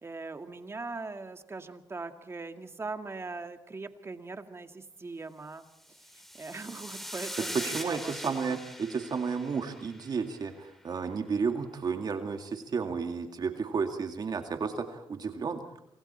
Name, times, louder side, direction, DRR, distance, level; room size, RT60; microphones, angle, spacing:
voice 1, 0.0-5.7 6.1-8.6, right 3 dB, 30° right, 7 dB, 2.0 m, -41 dB
sound 1, 5.8-10.3, equal, 5° left, 4.8 m, -41 dB
voice 2, 7.5-15.6, right 5 dB, 50° right, 5 dB, 2.2 m, -32 dB
29.0 x 25.0 x 4.4 m, 0.78 s
cardioid pair, 85°, 9 cm